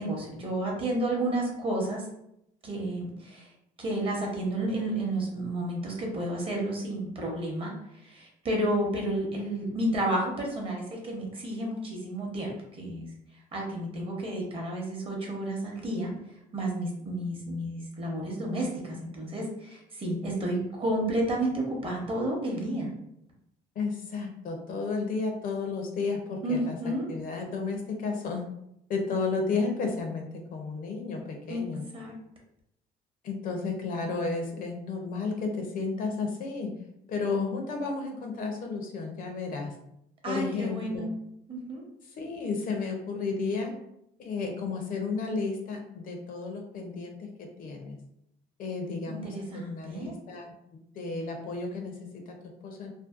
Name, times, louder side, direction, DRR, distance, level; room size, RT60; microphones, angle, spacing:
voice 1, 0.0-2.0 2.6-3.5 3.8-7.7 8.0-13.1 13.5-16.1 16.5-22.9 26.4-27.1 31.5-31.6 31.9-32.1 40.2-41.1 41.5-41.8 49.1-50.1, right 1 dB, 35° right, -1 dB, 0.7 m, -31 dB
voice 2, 23.8-28.5 28.9-31.8 33.2-36.7 37.1-39.7 40.3-41.1 42.1-43.7 44.2-48.0 48.6-52.9, left 4 dB, 55° left, 3 dB, 0.5 m, -33 dB
2.6 x 2.1 x 2.4 m, 0.79 s
cardioid pair, 110°, 17 cm